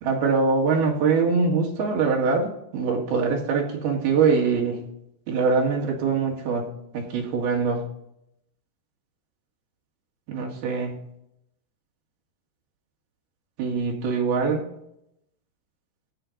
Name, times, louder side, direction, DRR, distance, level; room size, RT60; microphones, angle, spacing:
voice 1, 0.0-4.9 5.3-7.8 10.3-11.0 13.6-14.7, right 4 dB, 70° right, -1 dB, 3.7 m, -23 dB
13.5 x 9.0 x 2.6 m, 0.79 s
omnidirectional pair, 4.8 m